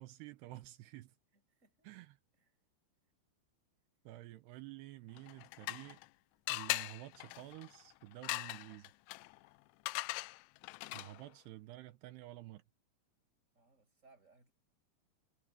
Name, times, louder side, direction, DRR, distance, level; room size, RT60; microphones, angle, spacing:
voice 1, 0.0-1.1 1.8-2.2 4.1-6.0 6.5-8.9 10.9-12.6, right 16 dB, 85° right, 2.3 m, -51 dB
voice 2, 1.3-1.9 2.3-2.5 13.5-14.5, right 3 dB, 15° right, 5.4 m, -67 dB
sound 1, 5.2-6.1 6.5-11.3, left 22 dB, 90° left, 3.3 m, -41 dB
omnidirectional pair, 6.0 m